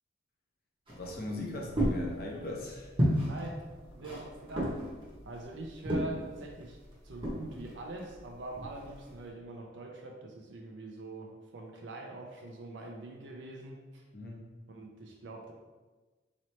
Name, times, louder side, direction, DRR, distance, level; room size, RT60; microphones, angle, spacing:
voice 1, 0.9-2.9 14.1-14.4, left 1 dB, 50° left, -2 dB, 0.7 m, -39 dB
sound 1, 0.9-9.2, equal, 25° right, 0.8 m, -34 dB
voice 2, 3.3-3.6 4.0-4.7 5.2-6.8 7.0-14.0 14.7-15.5, right 2 dB, 75° right, 1 dB, 0.5 m, -44 dB
4.1 x 3.0 x 3.1 m, 1.3 s
head